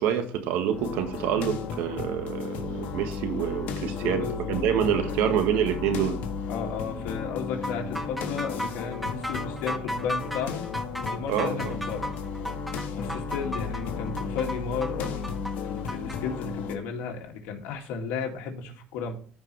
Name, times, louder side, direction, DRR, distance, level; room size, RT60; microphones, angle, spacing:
voice 1, 0.0-6.2 11.3-11.7, right 8 dB, 85° right, 7 dB, 1.5 m, -27 dB
sound 1, 0.7-16.8, left 5 dB, 65° left, 1.4 m, -34 dB
voice 2, 3.8-4.7 4.9-5.4 6.5-10.6 11.1-12.1 12.9-19.1, left 6 dB, 85° left, 2 dB, 2.2 m, -34 dB
sound 2, 7.6-16.2, equal, ahead, 0.8 m, -35 dB
14.5 x 5.0 x 3.2 m, 0.43 s
cardioid pair, 125°, 3 cm